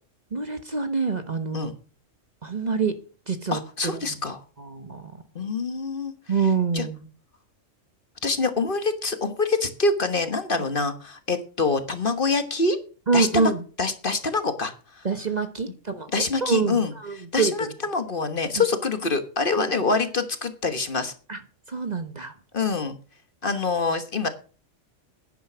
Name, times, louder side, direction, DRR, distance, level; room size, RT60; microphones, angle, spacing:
voice 1, 0.3-1.7 2.4-2.9 3.3-4.2 4.6-5.2 6.3-7.1 13.1-13.6 15.0-17.7 18.6-18.7 19.6-19.7 21.3-21.4 21.7-22.3, right 5 dB, 35° right, 9 dB, 1.2 m, -26 dB
voice 2, 3.5-4.4 5.3-6.1 6.7-6.8 8.2-12.8 13.1-13.5 13.8-15.1 16.1-16.9 17.3-21.1 22.5-22.9 23.4-24.3, left 3 dB, 45° left, 9 dB, 1.4 m, -25 dB
10.5 x 10.0 x 6.1 m, 0.38 s
omnidirectional pair, 1.3 m